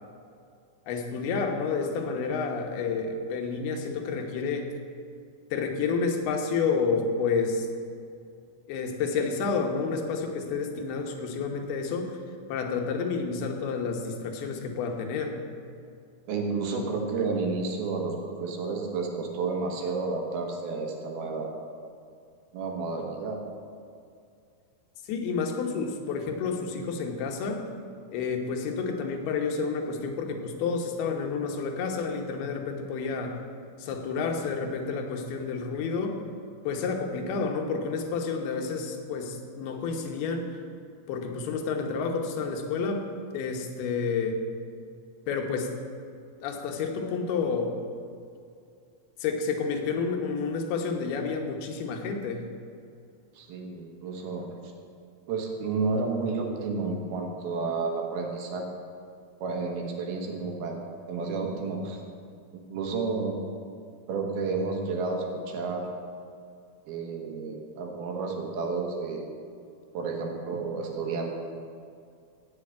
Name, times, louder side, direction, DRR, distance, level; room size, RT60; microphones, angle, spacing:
voice 1, 0.9-4.7 5.5-7.7 8.7-12.2 12.5-15.4 25.1-27.7 28.1-33.4 33.8-36.2 36.6-40.5 41.1-44.4 45.3-45.7 46.4-47.8 49.2-52.5, left 5 dB, 90° left, 3 dB, 3.1 m, -30 dB
voice 2, 16.3-21.5 22.5-23.4 53.3-54.5 55.3-58.6 59.4-60.8 61.1-62.0 62.5-63.4 64.1-65.8 66.9-69.3 69.9-71.3, right 4 dB, 80° right, 1 dB, 3.2 m, -31 dB
8.4 x 8.3 x 8.6 m, 2.4 s
omnidirectional pair, 4.4 m